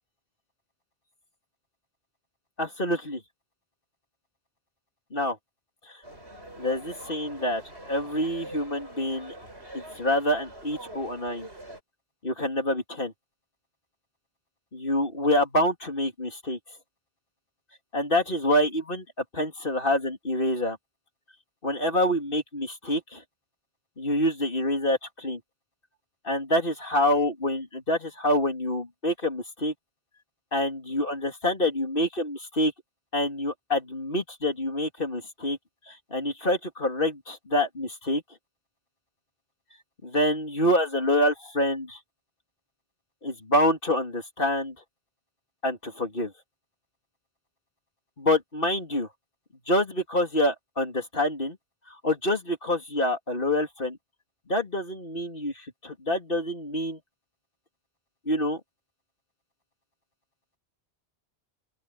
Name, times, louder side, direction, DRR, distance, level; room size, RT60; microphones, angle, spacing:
voice 1, 2.6-3.2 5.1-5.4 5.9-6.0 6.6-9.4 9.7-11.5 12.2-13.1 14.7-16.6 17.9-20.8 21.6-23.2 24.0-25.4 26.2-29.7 30.5-32.7 33.1-35.6 35.9-38.2 40.0-42.0 43.2-44.7 45.6-46.3 48.2-49.1 49.7-51.6 51.9-54.0 54.5-57.0 58.3-58.6, left 1 dB, 55° left, 3.7 m, -26 dB
sound 1, 6.0-11.8, right 1 dB, 80° right, 6.6 m, -44 dB
open air
omnidirectional pair, 1.1 m